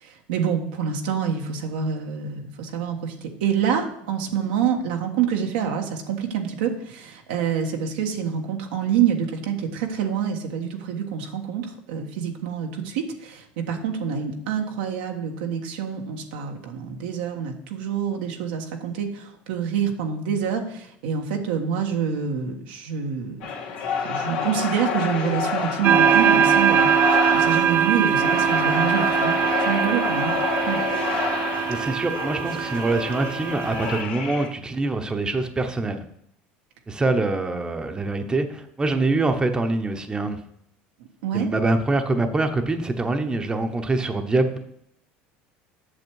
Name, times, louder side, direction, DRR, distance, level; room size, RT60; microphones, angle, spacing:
voice 1, 0.0-23.4 24.0-30.3 30.7-30.8 41.2-41.5, right 7 dB, 85° right, 2 dB, 1.4 m, -27 dB
sound 1, 23.4-34.5, left 5 dB, 85° left, 2.1 m, -28 dB
sound 2, 25.8-34.0, right 9 dB, 50° right, 0.4 m, -22 dB
voice 2, 31.7-36.0 36.9-40.4 41.3-44.6, right 2 dB, 15° right, 6 dB, 1.0 m, -24 dB
8.0 x 6.7 x 4.7 m, 0.72 s
supercardioid pair, 100°, 5 cm